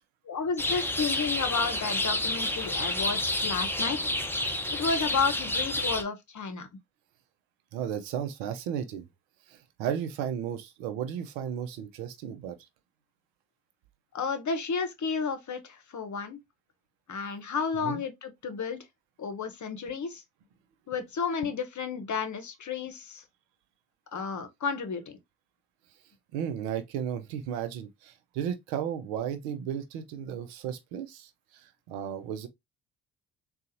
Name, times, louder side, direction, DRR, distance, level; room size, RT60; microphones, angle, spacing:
voice 1, 0.3-4.0 4.7-6.7 14.1-16.4 17.1-18.8 19.2-20.2 20.9-23.2 24.1-25.2, left 5 dB, 40° left, 0.9 m, -32 dB
sound 1, 0.6-6.0, left 1 dB, 5° left, 0.7 m, -29 dB
voice 2, 7.7-9.1 9.5-12.6 17.8-18.0 26.3-32.5, right 9 dB, 80° right, 0.7 m, -34 dB
3.9 x 2.4 x 2.6 m
hypercardioid pair, 50°, 46 cm